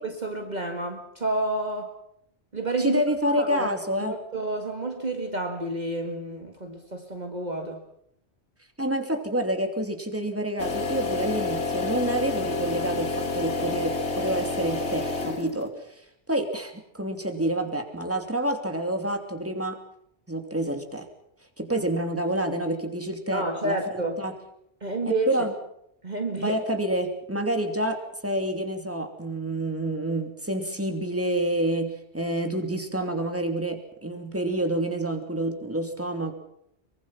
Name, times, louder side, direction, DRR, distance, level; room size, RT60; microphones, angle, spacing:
voice 1, 0.0-1.9 2.5-3.0 3.3-3.7 4.0-7.8 23.3-24.2 24.8-25.3 26.0-26.6, right 2 dB, 40° right, 4 dB, 2.1 m, -29 dB
voice 2, 2.8-4.1 8.8-16.0 16.3-19.8 20.3-21.1 21.6-24.3 25.1-25.5 26.4-28.0 28.2-36.3, right 1 dB, 10° right, 5 dB, 2.9 m, -28 dB
sound 1, 10.6-15.7, left 3 dB, 80° left, 2.5 m, -29 dB
23.5 x 23.5 x 5.9 m, 0.73 s
omnidirectional pair, 1.1 m